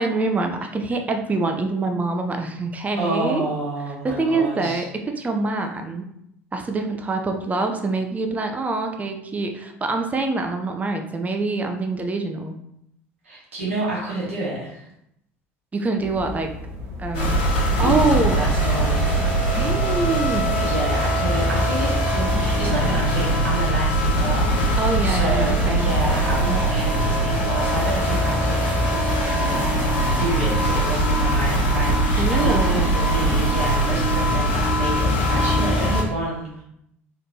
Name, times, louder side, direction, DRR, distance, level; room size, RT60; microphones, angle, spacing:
voice 1, 0.0-3.4 4.0-6.1 6.5-12.5 15.7-16.5 17.0-17.4 17.8-18.4 19.5-20.5 24.8-25.9 32.1-32.9, right 3 dB, 20° right, 4 dB, 0.5 m, -25 dB
voice 2, 3.0-4.8 13.2-14.8 17.8-19.2 20.6-29.7 30.2-36.6, right 2 dB, 85° right, -5 dB, 1.1 m, -29 dB
sound 1, 16.0-36.0, left 2 dB, 60° right, 1.0 m, -35 dB
sound 2, 17.1-36.0, right 1 dB, 70° left, 1.3 m, -21 dB
4.0 x 3.3 x 2.7 m, 0.77 s
figure-of-eight pair, 65°, 7 cm